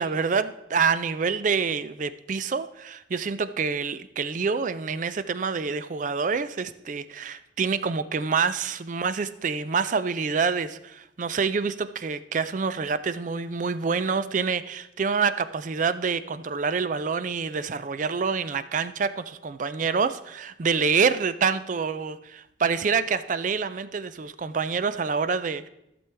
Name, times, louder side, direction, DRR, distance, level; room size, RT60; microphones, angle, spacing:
voice 1, 0.0-25.7, right 5 dB, 40° right, 13 dB, 0.4 m, -27 dB
15.0 x 6.9 x 3.4 m, 0.87 s
head